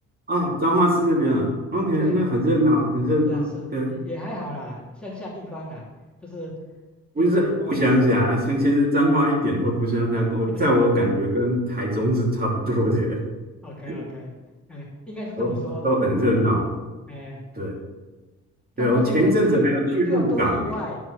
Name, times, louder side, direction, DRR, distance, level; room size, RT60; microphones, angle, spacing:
voice 1, 0.3-3.4 3.7-3.9 7.1-13.2 13.9-14.0 15.4-15.5 15.8-16.8 17.6-17.7 18.8-20.6, equal, 30° right, -3 dB, 3.0 m, -21 dB
voice 2, 3.2-5.8 6.2-6.5 7.2-7.4 10.5-10.6 13.6-14.3 14.7-15.8 16.2-16.4 17.1-17.4 18.8-19.6 20.0-21.0, left 1 dB, 5° left, -6 dB, 2.6 m, -34 dB
10.5 x 4.7 x 6.5 m, 1.2 s
cardioid pair, 90°, 30 cm